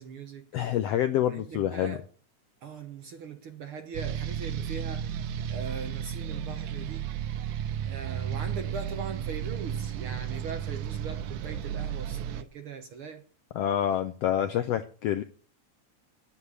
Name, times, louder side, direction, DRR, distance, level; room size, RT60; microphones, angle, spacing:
voice 1, 0.0-0.5 1.3-2.0 2.6-5.2 5.5-7.1 7.8-13.2, right 5 dB, 60° right, 1.5 m, -40 dB
voice 2, 0.5-2.0 13.5-15.2, left 11 dB, 75° left, 1.4 m, -27 dB
sound 1, 3.9-12.4, right 9 dB, 85° right, 2.4 m, -33 dB
9.4 x 8.5 x 9.5 m
omnidirectional pair, 3.5 m